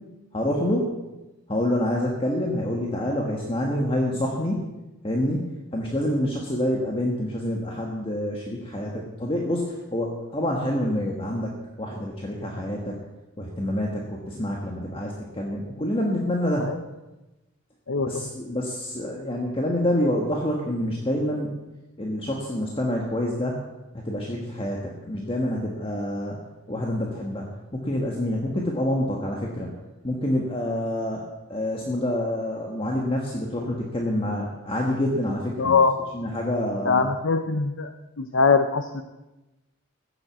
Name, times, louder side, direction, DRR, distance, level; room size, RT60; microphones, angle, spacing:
voice 1, 0.3-0.9 1.5-4.6 5.0-5.5 5.7-13.0 13.4-16.7 18.0-21.5 22.0-23.6 23.9-26.4 26.7-29.7 30.0-31.2 31.5-35.8 36.1-37.1, left 1 dB, 25° left, -1 dB, 1.4 m, -27 dB
voice 2, 17.9-18.2 35.6-36.2 36.8-37.9 38.2-39.0, left 4 dB, 60° left, 8 dB, 0.7 m, -22 dB
15.0 x 7.8 x 7.3 m, 1.0 s
head